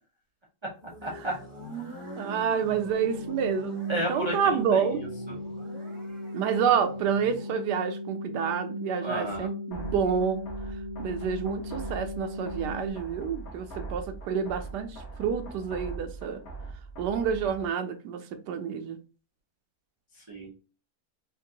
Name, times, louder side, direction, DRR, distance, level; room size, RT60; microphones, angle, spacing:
sound 1, 0.8-7.6, right 1 dB, 50° right, 1.4 m, -45 dB
voice 1, 1.0-1.4 1.7-2.1 3.9-5.3 9.0-9.5 20.2-20.5, right 1 dB, 30° right, 0.5 m, -33 dB
voice 2, 1.8-5.0 6.3-10.4 11.0-16.4 17.0-19.0, right 7 dB, 90° right, 1.2 m, -28 dB
sound 2, 2.9-12.9, left 1 dB, 80° left, 1.9 m, -38 dB
sound 3, 9.7-17.7, right 3 dB, 65° left, 1.4 m, -41 dB
4.5 x 2.5 x 2.8 m
omnidirectional pair, 1.8 m